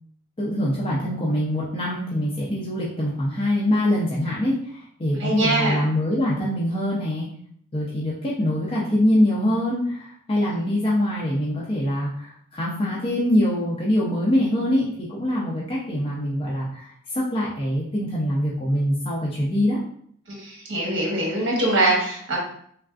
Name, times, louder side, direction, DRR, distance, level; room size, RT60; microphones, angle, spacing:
voice 1, 0.4-7.3 7.7-19.8, left 1 dB, 25° left, -6 dB, 0.5 m, -24 dB
voice 2, 5.2-5.8 20.3-22.4, right 2 dB, 60° right, -2 dB, 1.0 m, -23 dB
3.4 x 2.4 x 2.3 m, 0.64 s
head